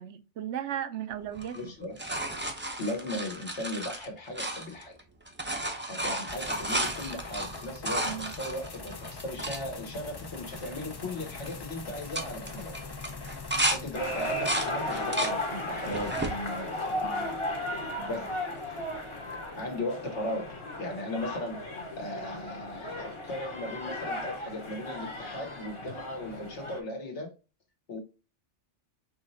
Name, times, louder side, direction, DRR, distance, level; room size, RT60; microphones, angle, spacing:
voice 1, 0.0-1.7 8.1-8.3 17.0-17.3 18.0-18.3, right 10 dB, 70° right, 0.9 m, -37 dB
sound 1, 1.3-5.0 5.3-9.6 10.2-10.3 10.5-10.9 11.2-11.6 12.0-13.8 14.2-15.4 15.9-16.4 17.0-17.7 19.3-19.4, right 1 dB, 15° right, 0.5 m, -33 dB
voice 2, 1.5-1.9 2.5-4.9 5.9-12.8 13.7-16.7 18.1-18.3 19.6-21.6 22.0-27.3 27.9-28.0, left 1 dB, 70° left, 1.7 m, -37 dB
sound 2, 6.3-19.8, left 4 dB, 40° left, 0.3 m, -45 dB
sound 3, 13.9-26.8, left 1 dB, 25° left, 1.0 m, -35 dB
5.6 x 3.1 x 2.7 m
omnidirectional pair, 1.2 m